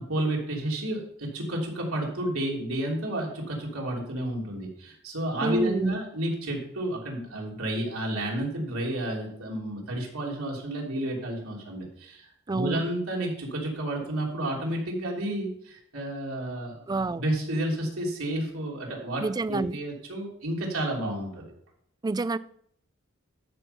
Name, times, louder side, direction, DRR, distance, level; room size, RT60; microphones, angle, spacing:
voice 1, 0.0-16.8 17.1-19.2 19.5-21.5, right 1 dB, 85° right, -1 dB, 3.3 m, -31 dB
voice 2, 5.4-6.0 12.5-12.8 16.9-17.2 19.2-19.8 22.0-22.4, right 3 dB, 20° right, 16 dB, 0.3 m, -28 dB
13.0 x 5.8 x 5.4 m, 0.68 s
head